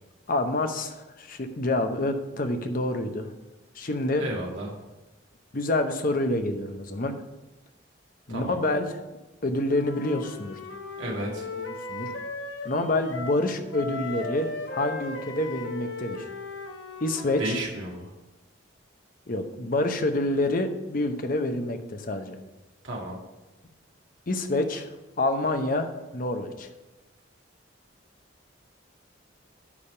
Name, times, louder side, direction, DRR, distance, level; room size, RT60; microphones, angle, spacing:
voice 1, 0.3-3.3 3.8-4.3 5.5-7.2 8.3-9.0 9.4-10.6 11.6-12.1 12.6-16.3 17.0-17.6 19.3-22.4 24.3-26.7, left 2 dB, 45° left, 7 dB, 0.8 m, -27 dB
voice 2, 4.2-4.7 8.3-8.6 11.0-11.5 17.4-18.1 22.8-23.2, right 1 dB, 75° right, -2 dB, 2.0 m, -32 dB
Wind instrument woodwind instrument, 9.7-13.4 13.7-17.7, left 3 dB, 70° left, 1.1 m, -37 dB
9.9 x 3.5 x 6.9 m, 1.1 s
head